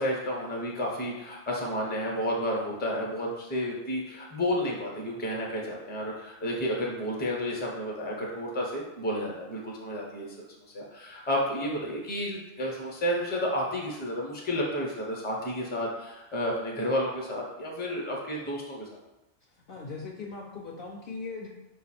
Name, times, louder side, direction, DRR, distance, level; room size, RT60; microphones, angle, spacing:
voice 1, 0.0-10.3 10.7-19.0, equal, 10° left, -2 dB, 0.5 m, -31 dB
voice 2, 19.5-21.5, left 4 dB, 60° left, -2 dB, 0.7 m, -39 dB
4.9 x 2.4 x 4.2 m, 1.0 s
omnidirectional pair, 1.2 m